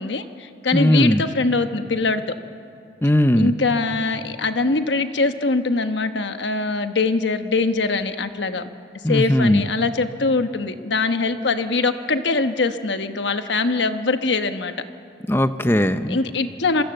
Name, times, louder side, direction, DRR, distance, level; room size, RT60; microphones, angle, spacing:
voice 1, 0.0-2.3 3.4-8.7 9.1-14.7 16.1-16.8, left 3 dB, 80° left, 9 dB, 1.1 m, -22 dB
voice 2, 0.7-1.2 3.0-3.5 9.0-9.6 15.3-16.2, left 1 dB, 15° left, 10 dB, 0.7 m, -18 dB
27.0 x 21.0 x 7.8 m, 2.4 s
head